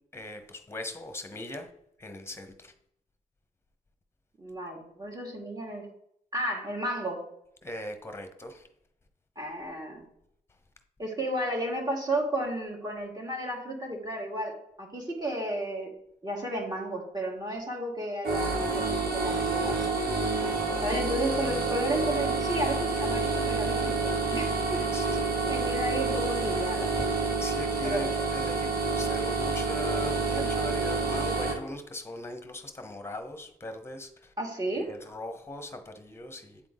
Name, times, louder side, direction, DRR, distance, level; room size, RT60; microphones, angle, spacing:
voice 1, 0.1-1.7 2.0-2.7 7.6-8.7 24.9-25.2 27.0-27.1 27.4-34.3 34.7-36.6, left 1 dB, 15° left, 7 dB, 1.0 m, -40 dB
voice 2, 4.4-5.9 6.3-7.2 9.4-10.0 11.0-15.9 16.2-19.9 20.8-24.8 25.5-26.9 27.5-28.3 30.3-30.5 34.4-34.9, right 1 dB, 25° right, -2 dB, 1.8 m, -33 dB
sound 1, 18.2-31.5, right 3 dB, 75° right, 1.9 m, -28 dB
8.5 x 3.7 x 3.7 m, 0.75 s
cardioid pair, 75°, 16 cm